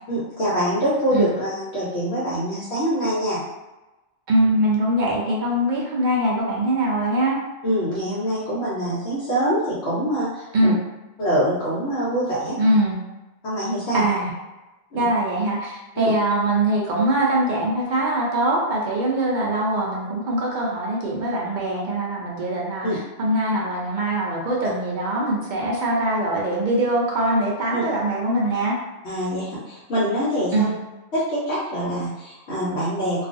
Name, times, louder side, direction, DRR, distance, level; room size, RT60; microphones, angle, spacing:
voice 1, 0.1-3.4 7.6-10.8 11.2-12.6 13.4-14.0 14.9-15.1 16.0-16.1 22.8-23.0 27.7-27.8 29.0-30.7 31.1-33.3, equal, 60° left, -10 dB, 1.0 m, -24 dB
voice 2, 4.3-7.4 10.5-10.8 12.6-13.0 13.9-14.3 14.9-28.8 30.5-30.7, right 1 dB, 65° right, -3 dB, 0.5 m, -22 dB
2.4 x 2.4 x 2.5 m, 1.1 s
omnidirectional pair, 1.4 m